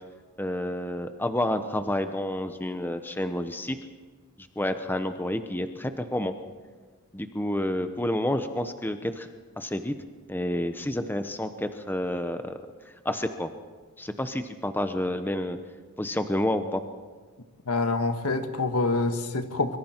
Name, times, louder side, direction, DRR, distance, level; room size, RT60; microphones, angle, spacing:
voice 1, 0.4-3.8 4.6-6.3 7.1-9.3 9.6-9.9 10.3-12.5 13.0-13.5 14.0-15.6 16.0-16.8, left 1 dB, 10° left, 8 dB, 0.8 m, -29 dB
voice 2, 17.7-19.8, left 3 dB, 85° left, 7 dB, 1.6 m, -26 dB
25.0 x 24.0 x 4.5 m, 1.4 s
head